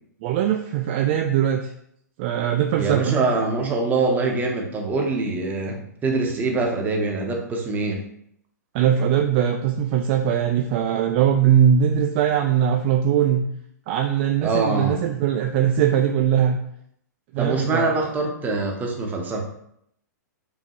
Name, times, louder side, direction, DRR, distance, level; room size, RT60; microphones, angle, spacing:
voice 1, 0.2-1.7 2.2-3.2 8.7-13.5 13.9-16.6 17.3-17.9, right 9 dB, 40° right, 3 dB, 0.3 m, -21 dB
voice 2, 2.8-8.0 14.4-15.0 17.4-19.4, right 3 dB, 15° right, 1 dB, 0.8 m, -24 dB
5.1 x 2.7 x 3.0 m, 0.72 s
figure-of-eight pair, 120°, 10 cm